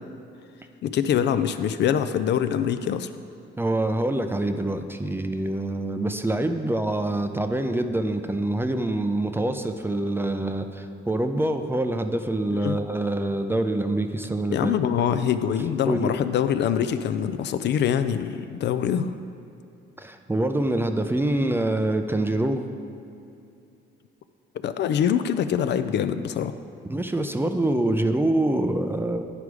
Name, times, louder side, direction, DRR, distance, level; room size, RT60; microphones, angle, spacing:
voice 1, 0.8-3.1 12.6-12.8 14.5-19.1 24.6-26.5, left 8 dB, 60° left, 11 dB, 0.4 m, -24 dB
voice 2, 3.6-14.7 15.9-16.1 20.0-22.7 26.9-29.3, right 1 dB, 10° right, 7 dB, 0.4 m, -25 dB
9.7 x 4.8 x 4.8 m, 2.6 s
cardioid pair, 90°, 20 cm